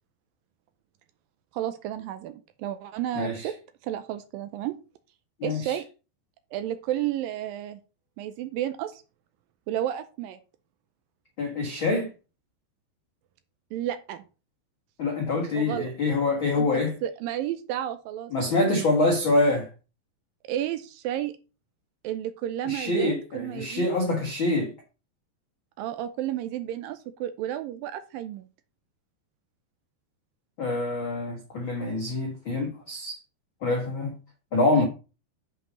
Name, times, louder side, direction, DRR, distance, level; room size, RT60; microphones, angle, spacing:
voice 1, 1.5-3.5 3.8-4.8 5.4-5.8 6.5-7.8 8.2-9.0 9.7-10.4 13.7-14.2 15.5-15.9 16.6-18.8 20.4-21.3 22.0-23.9 25.8-28.5 34.8-34.9, right 12 dB, 85° right, 2.0 m, -32 dB
voice 2, 3.1-3.5 5.4-5.8 11.4-12.1 15.0-16.9 18.3-19.7 22.6-24.7 30.6-33.2 33.6-34.1 34.5-34.8, left 2 dB, 55° left, 1.3 m, -25 dB
7.5 x 5.6 x 5.4 m
omnidirectional pair, 4.8 m